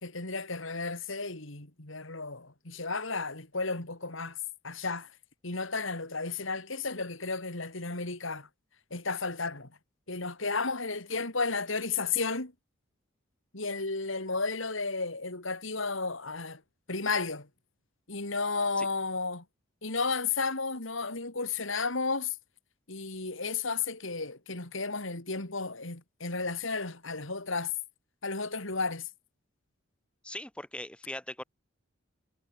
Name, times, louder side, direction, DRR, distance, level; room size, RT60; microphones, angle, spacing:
voice 1, 0.0-4.4 4.6-5.1 5.4-8.5 8.9-9.7 10.1-12.5 13.5-16.6 16.9-17.5 18.1-19.4 19.8-22.4 22.9-27.7 28.2-29.1, left 4 dB, 70° left, 3.4 m, -33 dB
voice 2, 30.2-31.4, left 1 dB, 5° left, 3.2 m, -40 dB
head